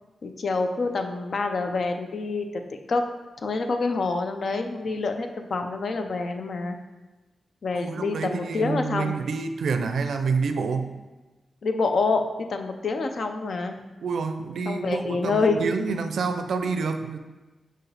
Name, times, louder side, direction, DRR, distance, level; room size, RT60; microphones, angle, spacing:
voice 1, 0.2-2.4 2.9-3.0 3.4-6.8 7.6-9.2 11.6-12.2 12.5-13.8 14.7-15.7, left 3 dB, 60° left, 6 dB, 0.5 m, -26 dB
voice 2, 7.7-11.0 14.0-17.2, right 4 dB, 80° right, 7 dB, 0.4 m, -28 dB
6.0 x 4.7 x 3.3 m, 1.1 s
wide cardioid pair, 125°, 0 cm